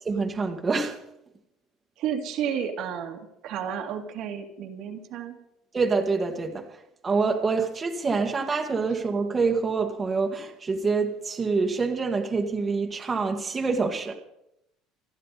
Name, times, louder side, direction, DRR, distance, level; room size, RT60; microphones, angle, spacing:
voice 1, 0.1-1.0 5.7-6.6 7.0-14.1, right 4 dB, 20° right, 1.9 m, -26 dB
voice 2, 2.0-5.4, right 8 dB, 60° right, 2.3 m, -32 dB
28.5 x 10.5 x 4.2 m
cardioid pair, 125°, 0 cm